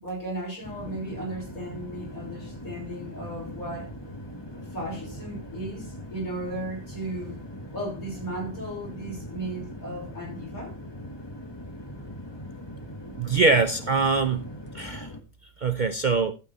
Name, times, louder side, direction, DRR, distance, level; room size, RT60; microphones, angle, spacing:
voice 1, 0.0-3.9 4.6-7.4 7.7-10.8, right 1 dB, 55° left, 6.3 m, -35 dB
sound 1, 0.6-15.2, left 1 dB, 15° left, 1.4 m, -41 dB
voice 2, 13.2-14.5 14.7-15.1 15.6-16.3, right 4 dB, 70° right, 0.4 m, -23 dB
12.0 x 8.6 x 4.2 m
omnidirectional pair, 1.8 m